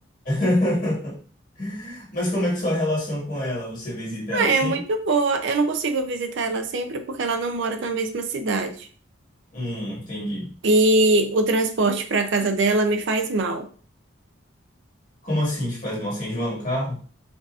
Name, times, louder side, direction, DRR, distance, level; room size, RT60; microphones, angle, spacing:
voice 1, 0.2-1.2 1.6-4.8 9.5-10.5 15.2-17.0, left 1 dB, 40° left, -6 dB, 1.7 m, -26 dB
voice 2, 4.3-8.9 10.6-13.7, right 2 dB, 65° right, 7 dB, 0.5 m, -22 dB
4.3 x 2.7 x 2.4 m, 0.41 s
head